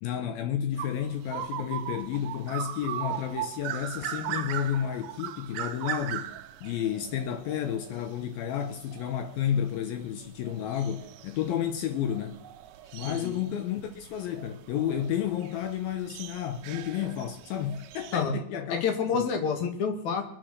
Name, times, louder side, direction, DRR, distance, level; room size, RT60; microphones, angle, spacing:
voice 1, 0.0-6.3 6.6-12.4 12.9-18.8 19.1-19.3, left 9 dB, 75° left, 2.4 m, -31 dB
sound 1, 0.7-18.2, right 11 dB, 80° right, 2.0 m, -39 dB
voice 2, 13.0-13.5 18.1-18.3 18.7-20.2, left 6 dB, 50° left, 2.9 m, -28 dB
23.0 x 8.2 x 6.5 m
omnidirectional pair, 4.9 m